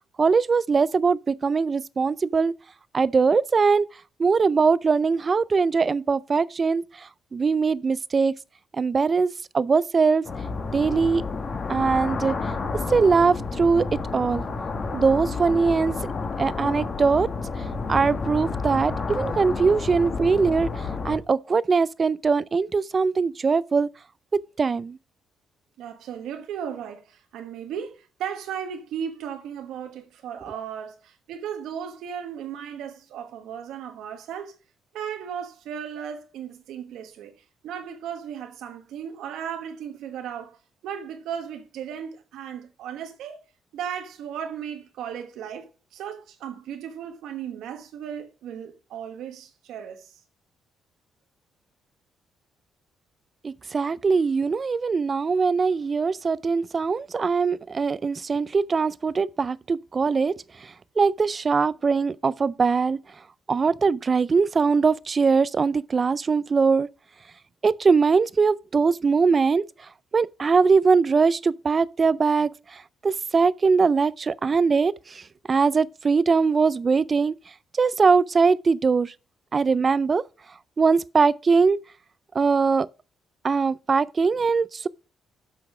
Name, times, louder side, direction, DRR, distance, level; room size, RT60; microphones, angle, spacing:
voice 1, 0.2-2.5 2.9-3.9 4.2-8.3 8.8-10.2 10.7-11.2 11.7-12.3 12.9-14.4 14.9-15.9 16.4-17.3 17.9-23.9 24.3-25.0 53.4-60.4 60.6-63.0 63.5-66.9 67.6-69.6 70.1-75.2 75.5-77.4 77.8-79.1 79.5-80.2 80.8-81.8 82.3-82.9 83.4-84.9, right 5 dB, 35° right, 0.4 m, -21 dB
sound 1, 10.2-21.2, left 4 dB, 40° left, 1.8 m, -30 dB
voice 2, 25.8-34.6 34.9-37.4 37.6-40.6 40.8-43.4 43.7-50.1, right 8 dB, 85° right, 1.2 m, -36 dB
7.7 x 5.9 x 4.9 m
cardioid pair, 90°, 0 cm